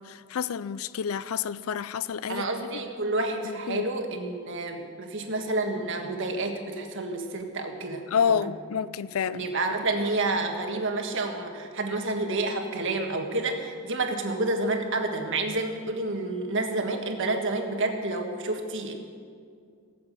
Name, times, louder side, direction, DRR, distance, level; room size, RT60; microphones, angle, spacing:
voice 1, 0.0-2.7 3.4-3.9 8.1-9.5, left 7 dB, 75° left, 0.4 m, -29 dB
voice 2, 2.3-8.0 8.3-8.5 9.3-18.9, right 2 dB, 65° right, 1.5 m, -29 dB
17.5 x 7.3 x 7.8 m
head